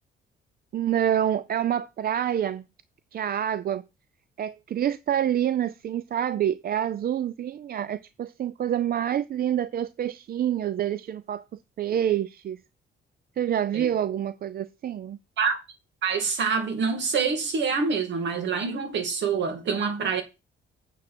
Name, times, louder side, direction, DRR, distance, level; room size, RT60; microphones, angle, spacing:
voice 1, 0.7-2.7 3.1-3.8 4.4-11.4 11.8-12.6 13.4-15.2, right 10 dB, 50° right, 0.5 m, -27 dB
voice 2, 16.0-20.2, right 5 dB, 65° right, 2.5 m, -26 dB
8.7 x 7.5 x 4.3 m
cardioid pair, 90°, 20 cm